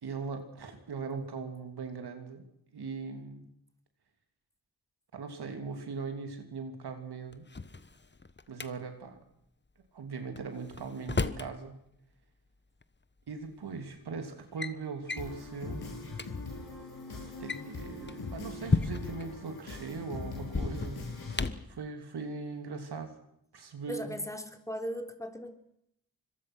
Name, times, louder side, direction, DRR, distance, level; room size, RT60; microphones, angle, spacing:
voice 1, 0.0-2.4 2.7-3.5 5.1-7.5 8.5-9.2 9.9-11.7 13.3-15.8 17.4-21.0 21.7-23.2 23.5-24.1, right 4 dB, 85° right, 6 dB, 3.1 m, -40 dB
Drawer open or close, 7.3-8.7 10.4-11.5 12.8-12.9 13.7-14.0 14.3-14.7 15.1-15.3 15.8-15.9 16.1-16.3 17.3-19.3 20.4-21.7, left 3 dB, 30° left, 1.3 m, -34 dB
sound 1, 15.1-21.5, left 3 dB, 75° left, 7.8 m, -41 dB
voice 2, 23.9-25.5, equal, 10° left, 6 dB, 3.6 m, -37 dB
25.5 x 22.0 x 6.3 m, 0.75 s
cardioid pair, 50°, 38 cm